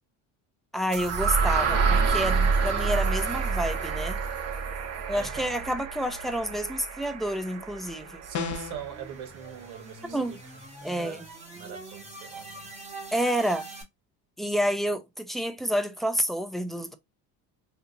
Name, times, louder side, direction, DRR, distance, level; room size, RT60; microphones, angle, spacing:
voice 1, 0.7-4.2 5.1-8.2 10.1-10.4 10.8-11.2 13.1-13.7 14.4-16.9, equal, ahead, 0.4 m, -29 dB
sound 1, 0.9-8.9, right 5 dB, 40° right, 0.9 m, -28 dB
voice 2, 5.1-5.6 8.2-10.4 10.8-11.3 11.5-12.7, right 8 dB, 70° right, 1.2 m, -42 dB
sound 2, 7.4-13.8, right 3 dB, 15° right, 1.2 m, -44 dB
sound 3, 8.3-8.9, left 6 dB, 50° left, 0.7 m, -32 dB
2.9 x 2.4 x 3.7 m
cardioid pair, 120°, 38 cm